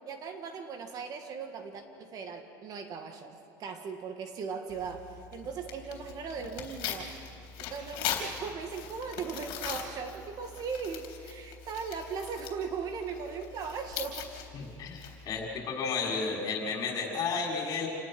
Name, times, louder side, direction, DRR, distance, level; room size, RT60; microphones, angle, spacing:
voice 1, 0.1-7.1 7.6-14.3, right 5 dB, 40° right, 6 dB, 1.8 m, -38 dB
Tearing, 4.7-15.4, left 8 dB, 60° left, 3.7 m, -41 dB
voice 2, 14.5-17.9, left 4 dB, 40° left, -1 dB, 6.3 m, -32 dB
28.5 x 19.0 x 6.1 m, 2.4 s
supercardioid pair, 135°, 10 cm